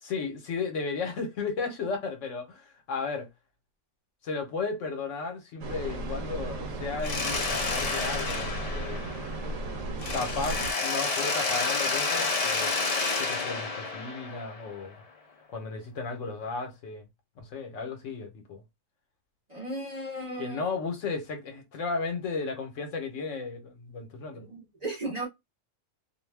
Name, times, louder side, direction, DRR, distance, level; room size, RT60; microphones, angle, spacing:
voice 1, 0.0-3.3 4.2-9.1 10.1-12.7 13.2-15.0 15.5-17.1 17.4-18.6 20.4-24.5, left 4 dB, 75° left, 1.1 m, -34 dB
sound 1, 5.6-10.7, right 2 dB, 85° right, 1.0 m, -35 dB
Mechanisms, 7.0-9.6 10.0-14.8, left 4 dB, 45° left, 0.5 m, -30 dB
voice 2, 19.5-20.6 24.3-25.3, right 1 dB, 40° right, 0.7 m, -35 dB
2.5 x 2.1 x 3.2 m
omnidirectional pair, 1.3 m